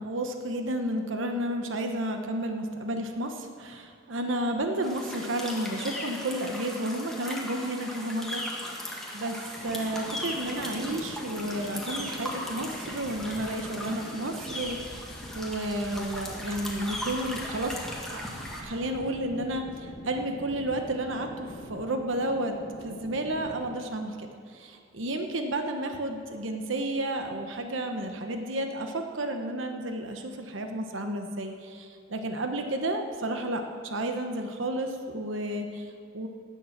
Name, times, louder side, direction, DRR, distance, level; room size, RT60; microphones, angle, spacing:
voice 1, 0.0-8.4 8.7-9.4 9.6-17.8 18.1-18.2 18.6-22.5 22.8-36.3, right 1 dB, 85° right, 5 dB, 1.1 m, -32 dB
sound 1, 4.8-18.6, left 1 dB, ahead, 1.9 m, -38 dB
sound 2, 9.6-23.7, equal, 55° left, 2.2 m, -44 dB
18.5 x 7.1 x 7.3 m, 2.3 s
head